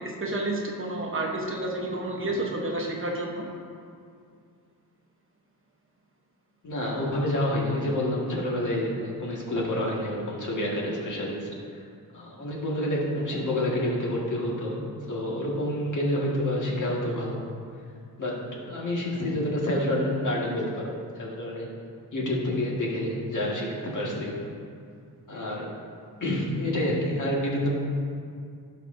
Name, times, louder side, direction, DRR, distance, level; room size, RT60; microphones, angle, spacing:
voice 1, 0.0-3.5 10.8-10.9, right 1 dB, 35° right, -1 dB, 1.0 m, -30 dB
voice 2, 6.6-11.5 12.1-14.8 15.1-17.4 18.2-21.7 22.1-24.3 25.3-25.7 26.2-27.7, left 1 dB, 55° left, -4 dB, 1.8 m, -28 dB
17.0 x 5.6 x 2.6 m, 2.3 s
wide cardioid pair, 180°, 37 cm